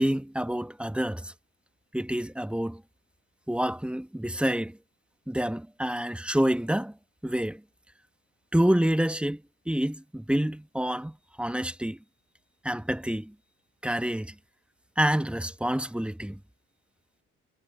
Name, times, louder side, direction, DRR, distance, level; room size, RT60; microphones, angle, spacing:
voice 1, 0.0-1.3 1.9-2.8 3.5-4.8 5.3-6.9 7.2-7.6 8.5-9.4 9.7-12.0 12.6-13.3 13.8-14.3 15.0-16.4, right 1 dB, 5° right, 1.2 m, -27 dB
cardioid pair, 90°, 30 cm